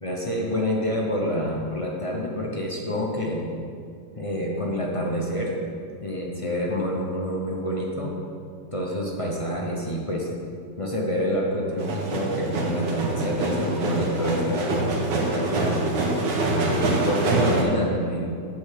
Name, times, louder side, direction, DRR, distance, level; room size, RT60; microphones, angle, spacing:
voice 1, 0.0-3.4 4.2-5.6 6.0-8.1 8.7-10.4 10.8-15.7 16.6-18.2, equal, 35° left, -3 dB, 0.5 m, -27 dB
sound 1, 11.8-17.6, right 2 dB, 85° right, 1.6 m, -25 dB
8.2 x 4.4 x 6.6 m, 2.3 s
omnidirectional pair, 1.9 m